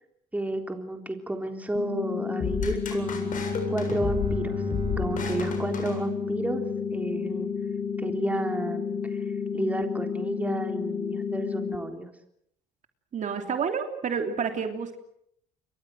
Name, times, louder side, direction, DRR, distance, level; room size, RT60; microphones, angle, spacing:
voice 1, 0.3-3.4 3.7-7.5 8.0-9.2 9.5-12.1, right 2 dB, 10° right, 5 dB, 3.8 m, -32 dB
sound 1, 1.8-11.8, left 6 dB, 70° left, 3.7 m, -31 dB
sound 2, 2.4-6.6, left 6 dB, 50° left, 7.5 m, -33 dB
Bowed string instrument, 2.8-7.3, right 7 dB, 30° right, 5.1 m, -39 dB
voice 2, 13.1-15.0, right 6 dB, 45° right, 6 dB, 3.2 m, -29 dB
29.0 x 23.5 x 6.5 m, 0.70 s
cardioid pair, 110°, 17 cm